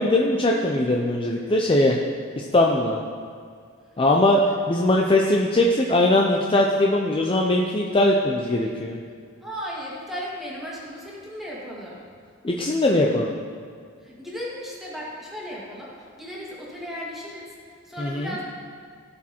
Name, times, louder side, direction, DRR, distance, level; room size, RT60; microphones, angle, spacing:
voice 1, 0.0-2.0 2.4-3.0 4.0-9.0 12.4-13.3 18.0-18.3, left 1 dB, 25° left, -1 dB, 0.6 m, -20 dB
voice 2, 9.4-12.0 14.0-18.4, equal, ahead, -6 dB, 2.3 m, -36 dB
16.5 x 6.2 x 4.4 m, 2.1 s
head